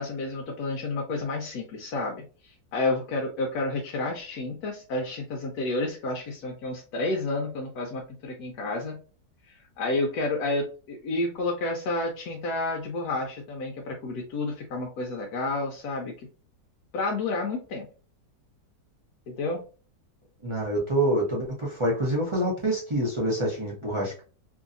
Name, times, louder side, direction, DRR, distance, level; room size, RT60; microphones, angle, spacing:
voice 1, 0.0-9.0 9.5-16.1 16.9-17.9 19.3-19.6, left 2 dB, 70° left, 0 dB, 1.0 m, -30 dB
voice 2, 20.4-24.2, right 1 dB, 30° right, -4 dB, 0.5 m, -26 dB
3.0 x 2.6 x 2.5 m, 0.37 s
omnidirectional pair, 1.9 m